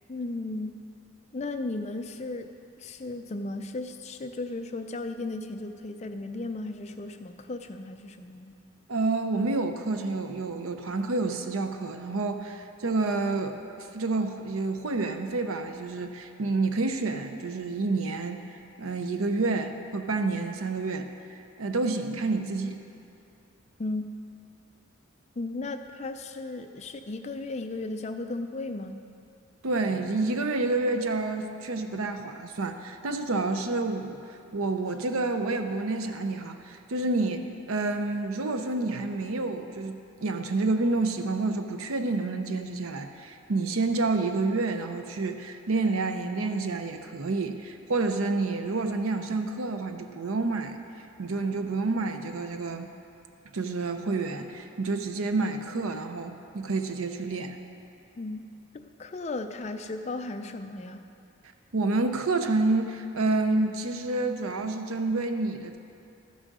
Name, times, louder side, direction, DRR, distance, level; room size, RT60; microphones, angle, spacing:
voice 1, 0.1-0.8 1.3-2.5 2.8-8.5 23.8-24.1 25.4-29.0 58.2-61.1, left 2 dB, 30° left, 7 dB, 0.4 m, -35 dB
voice 2, 8.9-18.4 18.8-21.1 21.6-22.8 29.6-34.2 34.5-50.8 51.2-52.9 53.5-57.6 61.7-65.8, right 3 dB, 90° right, 7 dB, 0.7 m, -29 dB
12.5 x 6.3 x 5.3 m, 2.6 s
head